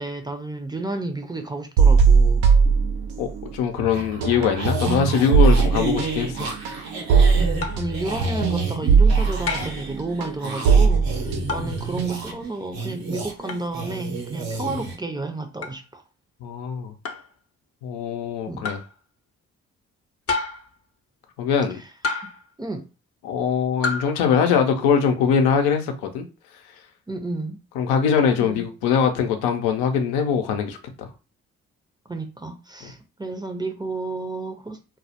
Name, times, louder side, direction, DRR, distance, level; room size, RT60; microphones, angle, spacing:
voice 1, 0.0-2.5 7.3-16.0 18.5-18.7 21.7-21.9 22.6-22.9 27.1-27.6 28.4-28.7 32.1-34.8, right 2 dB, 10° right, 0.5 m, -31 dB
sound 1, 1.8-3.5 3.8-12.4, right 5 dB, 85° right, 0.5 m, -19 dB
voice 2, 3.2-6.5 11.6-11.7 16.4-16.9 17.8-18.8 21.4-21.8 23.2-26.2 27.8-31.1, left 6 dB, 80° left, 0.6 m, -22 dB
sound 2, 3.9-15.0, right 3 dB, 70° right, 0.9 m, -32 dB
sound 3, 7.6-7.9 9.5-9.9 11.5-11.8 13.5-13.7 15.6-15.8 17.0-17.3 18.6-18.9 20.3-20.7 22.0-22.5 23.8-24.1, left 3 dB, 40° left, 0.6 m, -29 dB
2.2 x 2.0 x 2.7 m
hypercardioid pair, 40°, 37 cm